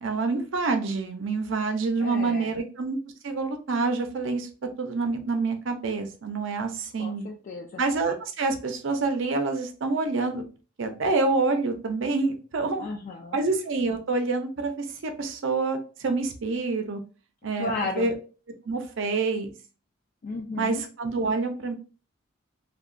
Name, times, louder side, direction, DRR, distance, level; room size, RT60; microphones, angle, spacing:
voice 1, 0.0-3.0 3.2-4.5 4.8-7.2 7.8-10.4 10.8-12.9 13.3-17.0 17.4-18.1 18.6-19.6 20.6-21.7, right 3 dB, 65° right, 6 dB, 0.5 m, -27 dB
voice 2, 2.0-2.6 7.0-7.8 12.8-13.4 17.5-18.1 20.2-20.8, left 3 dB, 45° left, 2 dB, 0.3 m, -33 dB
2.8 x 2.2 x 2.5 m, 0.36 s
head